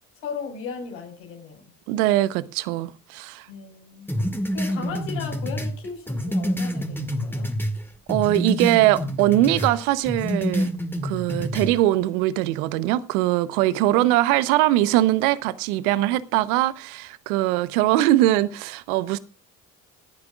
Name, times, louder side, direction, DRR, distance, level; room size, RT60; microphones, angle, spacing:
voice 1, 0.2-1.7 3.5-4.1 4.5-7.5 13.8-14.1, left 5 dB, 85° left, 5.0 m, -36 dB
voice 2, 1.9-3.5 8.1-10.7 11.0-19.2, right 15 dB, 85° right, 0.9 m, -21 dB
sound 1, 4.1-7.8 8.1-9.7 10.1-11.7, equal, 5° left, 2.3 m, -27 dB
28.0 x 9.7 x 2.3 m
hypercardioid pair, 55°, 44 cm